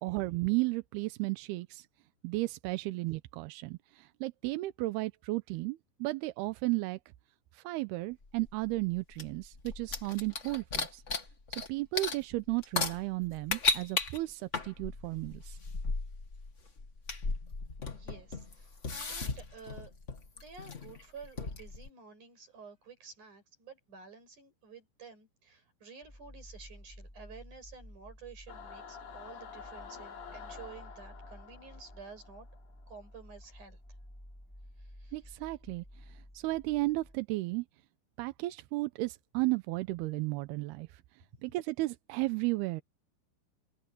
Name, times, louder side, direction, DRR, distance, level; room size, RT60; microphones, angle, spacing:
voice 1, 0.0-1.9 2.2-7.0 7.5-11.0 11.5-15.6 35.1-37.7 38.2-41.0 41.4-42.8, right 21 dB, 80° right, 2.5 m, -34 dB
sound 1, 8.2-11.7 11.9-21.9, left 4 dB, 50° left, 0.8 m, -36 dB
voice 2, 17.8-19.9 20.4-32.5 32.9-33.8 35.0-35.2, right 5 dB, 45° right, 8.5 m, -51 dB
sound 2, 26.0-37.2, equal, 5° left, 7.0 m, -53 dB
Singing / Musical instrument, 28.5-33.1, left 6 dB, 70° left, 5.3 m, -49 dB
open air
omnidirectional pair, 4.9 m